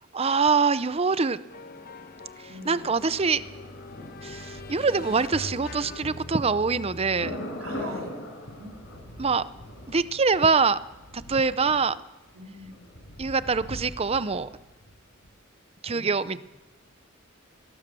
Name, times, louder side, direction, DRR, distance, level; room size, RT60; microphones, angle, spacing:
voice 1, 0.1-1.4 2.6-3.4 4.2-7.4 9.2-9.4 9.9-10.8 11.3-12.0 13.2-14.5 15.8-16.4, right 4 dB, 30° right, 15 dB, 0.6 m, -24 dB
sound 1, 1.5-7.4, left 2 dB, 45° left, 1.2 m, -41 dB
voice 2, 2.5-2.9 7.6-8.1 8.6-8.8 12.3-12.8 15.9-16.4, right 1 dB, 90° right, 2 dB, 3.5 m, -42 dB
Thunder, 3.1-14.9 15.2-15.3, left 1 dB, 65° left, 7.7 m, -42 dB
23.0 x 19.0 x 6.9 m, 1.1 s
head